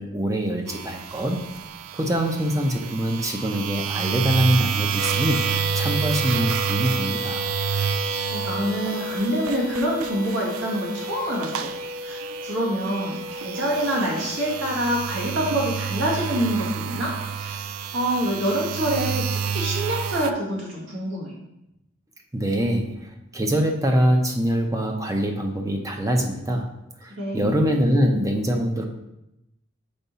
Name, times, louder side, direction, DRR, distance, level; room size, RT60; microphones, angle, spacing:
voice 1, 0.0-1.4 1.9-7.5 22.3-26.7 27.0-28.9, equal, 15° right, 3 dB, 0.6 m, -24 dB
sound 1, 0.7-20.3, right 7 dB, 90° right, 0.4 m, -29 dB
sound 2, 5.0-17.3, left 1 dB, 40° right, 1.6 m, -35 dB
voice 2, 8.3-11.7 12.0-17.6 17.9-21.3 27.1-27.6, right 1 dB, 65° right, -4 dB, 2.1 m, -26 dB
5.3 x 4.6 x 4.1 m, 0.87 s
head